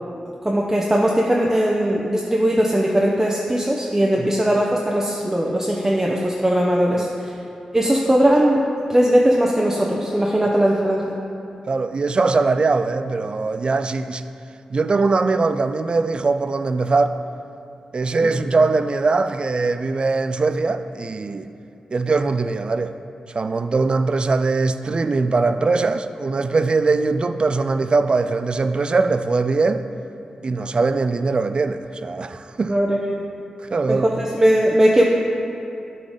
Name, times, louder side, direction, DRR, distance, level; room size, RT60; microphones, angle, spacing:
voice 1, 0.4-7.3 7.7-8.6 8.9-11.2 18.2-18.3 32.7-33.2 33.9-35.0, right 1 dB, 20° right, 0.7 m, -19 dB
voice 2, 11.7-14.2 14.7-17.2 17.9-21.5 21.9-22.9 23.3-29.8 30.4-32.8 33.7-34.1, right 3 dB, 50° right, 0.3 m, -21 dB
8.2 x 3.9 x 5.0 m
supercardioid pair, 45°, 2 cm